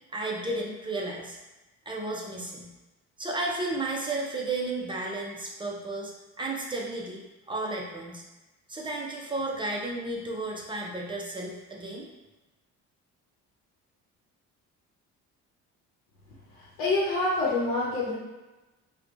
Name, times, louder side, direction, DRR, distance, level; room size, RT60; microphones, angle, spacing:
voice 1, 0.1-1.4 1.9-2.7 3.2-6.1 6.4-7.2 7.5-8.2 8.7-12.1, right 2 dB, 15° right, -2 dB, 0.5 m, -33 dB
voice 2, 16.8-18.1, left 2 dB, 90° left, -5 dB, 0.8 m, -26 dB
4.5 x 2.2 x 2.5 m, 1.1 s
cardioid pair, 120°, 31 cm